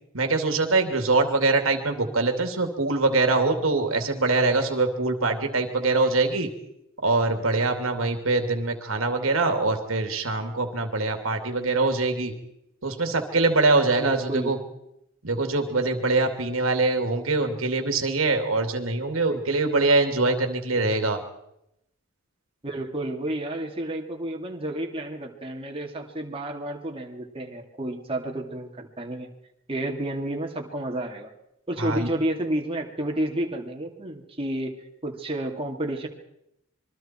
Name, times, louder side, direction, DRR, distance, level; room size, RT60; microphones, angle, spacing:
voice 1, 0.1-6.5 7.0-12.3 12.8-14.6 15.2-21.2 31.8-32.1, right 3 dB, 85° right, 5 dB, 2.8 m, -23 dB
voice 2, 14.0-14.6 22.6-29.3 29.7-31.3 31.7-34.7 35.0-36.1, right 1 dB, 25° right, 0 dB, 2.7 m, -30 dB
26.5 x 22.5 x 4.6 m, 0.82 s
head